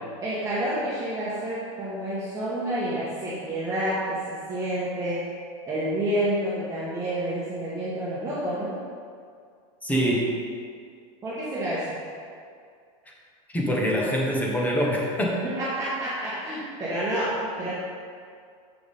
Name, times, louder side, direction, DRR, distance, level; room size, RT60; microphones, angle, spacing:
voice 1, 0.2-5.2 5.7-8.8 11.2-12.0 15.4-17.7, right 1 dB, 20° right, -9 dB, 1.4 m, -29 dB
voice 2, 9.8-10.3 13.5-15.4, equal, 10° left, -2 dB, 1.1 m, -24 dB
7.1 x 6.0 x 3.6 m, 2.2 s
supercardioid pair, 140°, 18 cm